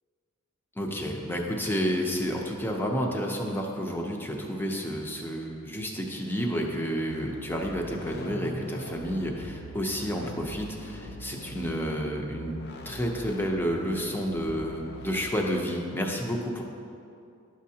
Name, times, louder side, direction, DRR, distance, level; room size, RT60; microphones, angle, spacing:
voice 1, 0.8-12.6 12.8-16.6, equal, 10° left, 1 dB, 0.6 m, -30 dB
sound 1, 7.1-15.3, equal, 50° left, 0.6 m, -42 dB
11.0 x 6.3 x 2.8 m, 2.6 s
head